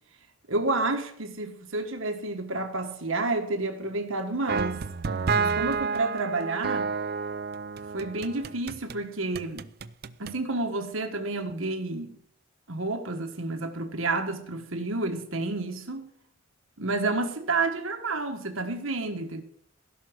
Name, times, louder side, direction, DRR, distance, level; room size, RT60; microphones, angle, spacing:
voice 1, 0.5-4.8 5.3-6.9 7.9-9.7 10.2-12.1 12.7-16.1 16.8-19.4, right 2 dB, 70° right, 1.5 m, -30 dB
sound 1, 4.5-9.0 9.3-10.4, right 5 dB, 45° right, 0.5 m, -30 dB
16.0 x 6.1 x 7.9 m
head